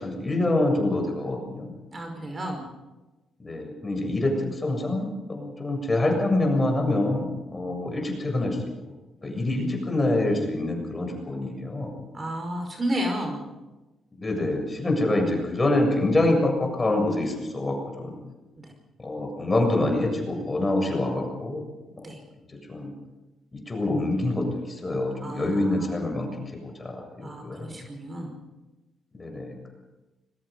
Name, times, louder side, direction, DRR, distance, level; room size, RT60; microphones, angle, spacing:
voice 1, 0.0-1.7 3.4-8.6 9.2-11.9 14.2-18.1 19.0-21.7 22.5-22.9 23.5-26.3 26.6-27.7 29.1-29.7, left 2 dB, 20° left, 2 dB, 7.4 m, -26 dB
voice 2, 1.9-2.7 12.1-13.5 18.6-18.7 22.0-22.2 25.2-25.9 27.2-28.3, equal, 30° right, 3 dB, 5.2 m, -32 dB
26.0 x 22.0 x 5.5 m, 1.1 s
cardioid pair, 95°, 0 cm